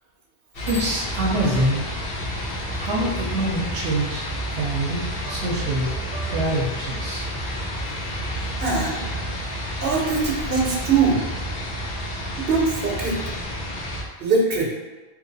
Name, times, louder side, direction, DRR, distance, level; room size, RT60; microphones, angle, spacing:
sound 1, 0.5-14.0, equal, 60° left, 1.1 m, -30 dB
Bicycle bell, 0.6-1.9, left 1 dB, 15° left, 0.6 m, -42 dB
voice 1, 0.7-1.8 2.8-5.9 6.3-7.3, right 1 dB, 85° right, -3 dB, 0.9 m, -25 dB
voice 2, 8.6-9.0 9.8-11.3 12.5-13.2 14.2-14.7, right 4 dB, 60° right, -3 dB, 1.0 m, -22 dB
3.0 x 2.8 x 3.9 m, 1.3 s
omnidirectional pair, 1.1 m